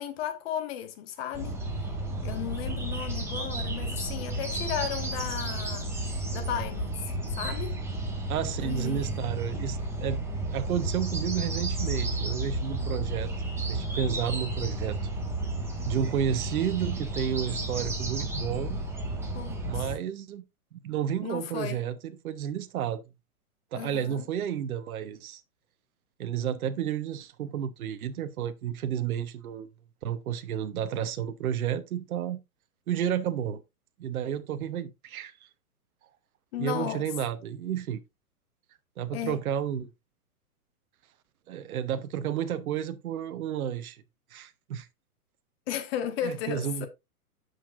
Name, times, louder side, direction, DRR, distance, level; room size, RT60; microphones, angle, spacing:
voice 1, 0.0-1.6 2.2-5.9 6.3-7.7 8.6-9.2 19.3-19.9 21.2-21.8 23.7-24.2 36.5-37.0 39.1-39.4 45.7-46.9, left 10 dB, 40° left, 1.5 m, -35 dB
sound 1, 1.3-19.9, right 2 dB, 5° right, 1.6 m, -32 dB
voice 2, 8.3-13.3 13.7-15.0 15.8-18.8 19.6-20.4 20.7-23.0 23.7-25.4 26.2-29.7 30.0-32.4 32.9-33.6 34.0-35.5 36.6-38.0 39.0-39.9 41.5-44.0 44.3-44.9 46.2-46.9, right 9 dB, 65° right, 1.0 m, -31 dB
10.0 x 6.6 x 2.5 m
hypercardioid pair, 145°, 46 cm